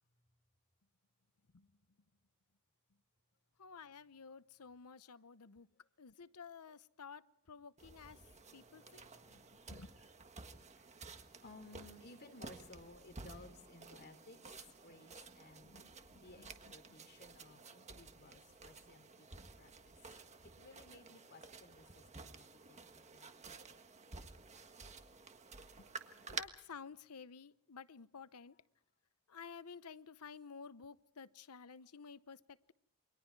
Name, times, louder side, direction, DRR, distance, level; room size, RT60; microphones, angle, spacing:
voice 1, 3.6-5.7 6.0-8.2 8.5-9.9 15.6-16.5 16.9-17.0 25.8-25.9 26.3-28.5 29.3-32.7, left 5 dB, 80° left, 0.8 m, -53 dB
sound 1, 7.8-26.4, right 4 dB, 30° right, 1.5 m, -53 dB
voice 2, 8.6-9.7 10.8-10.9 11.4-19.3 19.6-20.0 20.5-23.3, left 3 dB, 45° left, 3.3 m, -59 dB
28.5 x 24.0 x 4.7 m
head